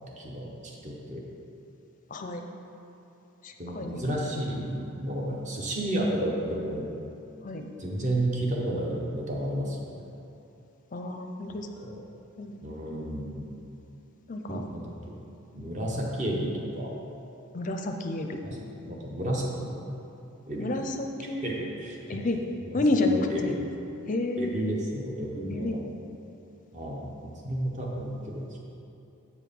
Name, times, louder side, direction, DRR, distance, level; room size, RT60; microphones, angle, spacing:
voice 1, 0.2-1.2 3.6-6.8 7.8-9.8 11.8-12.0 12.6-13.5 14.5-15.2 15.5-16.9 18.4-19.8 20.5-20.8 21.2-22.2 22.6-23.6 24.4-25.8 26.7-28.6, right 1 dB, 35° right, -2 dB, 1.0 m, -32 dB
voice 2, 2.1-2.5 3.4-4.2 7.4-7.7 10.9-11.7 12.4-12.5 14.3-14.6 17.5-18.4 20.6-21.4 22.1-22.4 22.7-23.6 24.1-24.5 25.5-25.8, left 2 dB, 35° left, 4 dB, 0.5 m, -29 dB
8.3 x 4.7 x 5.3 m, 2.8 s
head